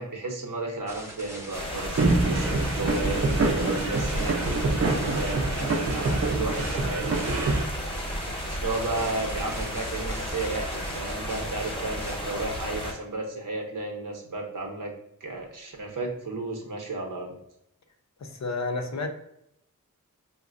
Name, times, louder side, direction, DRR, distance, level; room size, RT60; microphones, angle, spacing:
voice 1, 0.0-4.3 4.8-7.2 8.4-14.9 15.2-17.4, right 2 dB, 70° right, 0.8 m, -33 dB
sound 1, 0.9-12.2, equal, 10° right, 0.7 m, -43 dB
sound 2, 1.5-12.9, equal, 15° left, 0.9 m, -33 dB
sound 3, 2.0-7.6, right 3 dB, 45° right, 0.5 m, -26 dB
voice 2, 18.2-19.1, left 3 dB, 55° left, 0.5 m, -30 dB
4.8 x 2.1 x 2.4 m
wide cardioid pair, 75°, 33 cm